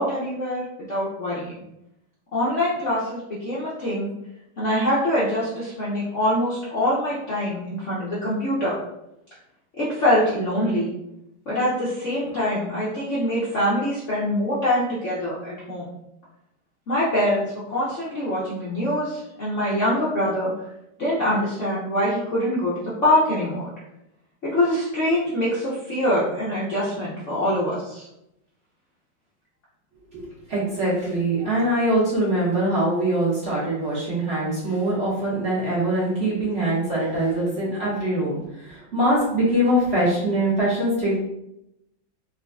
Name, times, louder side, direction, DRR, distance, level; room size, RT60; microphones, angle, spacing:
voice 1, 0.0-1.5 2.3-4.1 4.6-8.7 9.8-10.9 11.5-15.9 16.9-20.5 21.0-23.6 24.4-28.0, left 1 dB, 50° left, -9 dB, 0.9 m, -24 dB
voice 2, 30.1-41.1, right 1 dB, 40° right, -8 dB, 1.3 m, -23 dB
3.9 x 3.9 x 2.3 m, 0.84 s
omnidirectional pair, 2.2 m